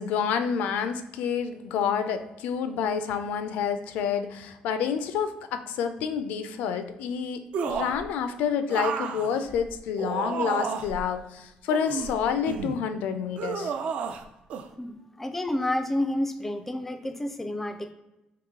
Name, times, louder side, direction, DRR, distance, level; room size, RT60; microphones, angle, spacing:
voice 1, 0.0-13.7, left 7 dB, 90° left, 9 dB, 0.4 m, -28 dB
sound 1, 7.5-8.0 8.7-11.0 11.7-12.8 13.4-14.2 14.5-14.7, right 6 dB, 55° right, 0.4 m, -31 dB
voice 2, 14.8-17.9, left 1 dB, 10° left, 8 dB, 0.3 m, -30 dB
4.7 x 2.9 x 3.6 m, 0.93 s
cardioid pair, 150°, 3 cm